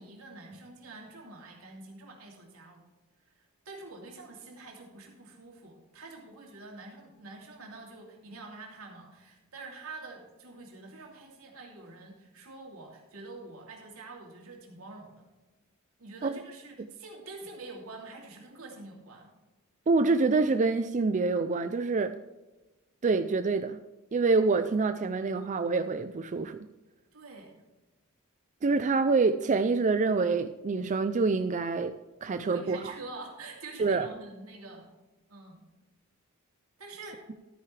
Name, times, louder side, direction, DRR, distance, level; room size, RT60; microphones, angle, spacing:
voice 1, 0.0-2.8 3.3-15.3 16.0-19.3 27.1-27.6 32.2-34.9 35.3-35.6 36.8-37.2, right 3 dB, 90° right, 0 dB, 2.9 m, -46 dB
voice 2, 19.9-22.2 23.0-23.8 24.1-26.7 28.6-32.9 33.8-34.1, right 4 dB, 35° right, 9 dB, 0.4 m, -26 dB
13.0 x 9.2 x 3.3 m, 1.1 s
head